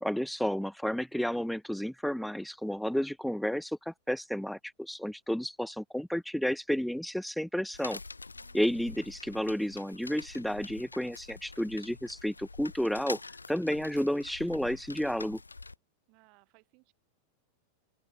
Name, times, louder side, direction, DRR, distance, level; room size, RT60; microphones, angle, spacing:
voice 1, 0.0-8.0 8.5-13.2 13.5-15.4, equal, ahead, 0.8 m, -31 dB
sound 1, 7.7-15.7, left 3 dB, 80° left, 1.4 m, -46 dB
voice 2, 8.3-8.7 8.9-9.0 16.1-16.9, right 31 dB, 45° right, 6.4 m, -64 dB
open air
figure-of-eight pair, 90°, 0 cm